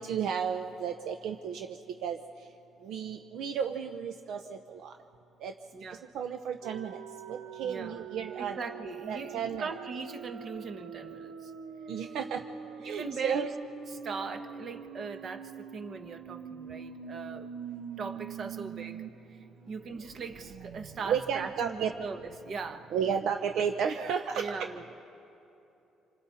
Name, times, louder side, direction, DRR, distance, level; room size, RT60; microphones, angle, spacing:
voice 1, 0.0-2.2 2.8-4.9 5.4-5.5 6.1-7.0 7.3-8.6 9.1-9.6 11.9-12.4 12.8-13.5 17.7-17.8 21.0-21.9 22.9-24.5, right 7 dB, 65° right, 5 dB, 0.7 m, -33 dB
voice 2, 5.7-6.1 7.6-8.1 8.4-11.5 12.8-13.5 13.9-17.5 18.0-22.9 24.4-24.9, right 4 dB, 40° right, 7 dB, 1.2 m, -40 dB
sound 1, 6.6-19.1 19.4-19.5 19.9-22.6, right 6 dB, 85° right, 1.1 m, -44 dB
29.5 x 27.0 x 4.2 m, 3.0 s
cardioid pair, 165°, 0 cm